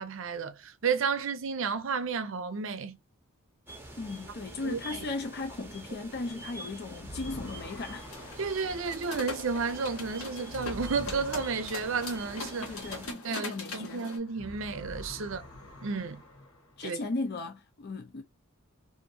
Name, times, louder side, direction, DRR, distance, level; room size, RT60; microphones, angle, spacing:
voice 1, 0.0-3.0 4.6-5.0 8.4-12.7 13.2-15.4 15.8-16.2 16.8-17.0, right 5 dB, 60° right, 0.5 m, -32 dB
sound 1, 3.7-13.1, right 2 dB, 10° right, 0.6 m, -46 dB
voice 2, 4.0-8.2 12.6-14.1 16.8-18.2, left 3 dB, 50° left, 0.5 m, -37 dB
sound 2, 6.9-13.9 14.2-16.9, left 1 dB, 70° left, 1.2 m, -46 dB
sound 3, 8.1-14.2, left 3 dB, 90° left, 1.1 m, -42 dB
2.8 x 2.6 x 2.6 m
head